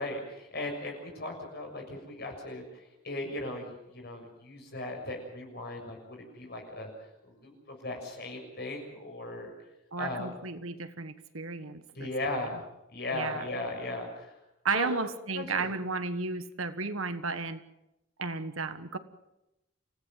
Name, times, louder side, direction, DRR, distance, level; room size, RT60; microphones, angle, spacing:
voice 1, 0.0-2.6 3.0-3.6 3.9-6.9 7.2-9.5 10.0-10.3 12.0-12.6 12.9-14.3 14.7-15.0 15.3-15.7, left 2 dB, 50° left, 2 dB, 6.9 m, -37 dB
voice 2, 9.9-12.5 13.1-13.5 14.6-17.6 18.2-19.0, right 4 dB, 80° right, 11 dB, 1.5 m, -34 dB
28.0 x 16.5 x 7.6 m, 0.91 s
head